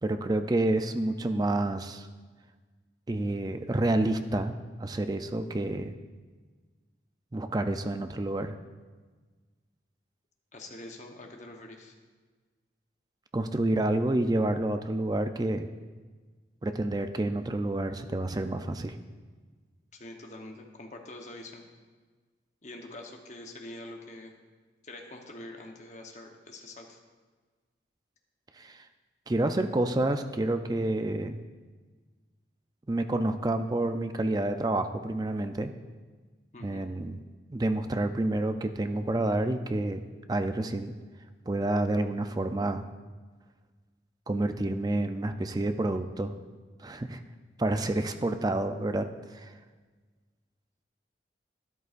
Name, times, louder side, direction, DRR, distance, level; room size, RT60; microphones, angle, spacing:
voice 1, 0.0-2.1 3.1-4.5 4.8-5.9 7.3-8.6 13.3-15.7 16.6-19.0 28.6-28.9 29.3-31.4 32.9-35.7 36.6-37.2 37.5-40.9 41.5-42.9 44.3-46.3 46.8-47.2 47.6-49.1 49.3-49.5, right 2 dB, 20° right, 8 dB, 0.4 m, -29 dB
voice 2, 10.5-11.9 19.9-21.7 22.6-24.3 24.8-27.0 36.5-36.8 47.8-47.9, left 1 dB, 40° left, 3 dB, 0.9 m, -45 dB
12.5 x 11.0 x 2.5 m, 1.4 s
head